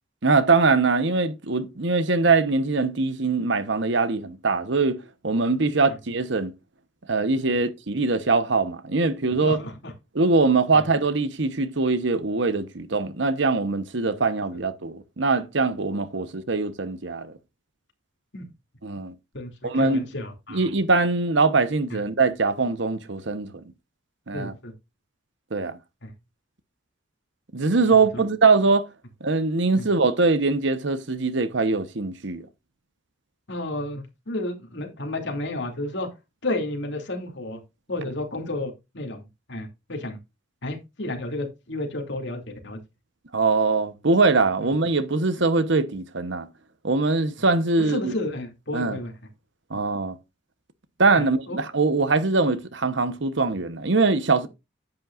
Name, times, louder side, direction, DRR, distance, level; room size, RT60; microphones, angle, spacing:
voice 1, 0.2-5.0 5.2-6.5 7.1-9.6 10.1-17.3 18.8-19.1 19.6-20.1 20.5-23.6 24.3-24.5 25.5-25.8 27.5-28.9 29.2-32.5 43.3-46.5 46.8-48.1 48.7-49.0 49.7-50.2 51.0-54.5, right 3 dB, 65° right, 1.0 m, -22 dB
voice 2, 9.4-9.9 18.3-18.4 19.3-20.7 21.9-22.0 24.3-24.7 26.0-26.1 29.8-29.9 33.5-36.1 36.4-37.6 37.9-39.2 39.5-40.2 40.6-42.8 47.8-49.1 51.1-51.6, left 2 dB, 60° left, 2.7 m, -32 dB
10.5 x 8.7 x 2.5 m
head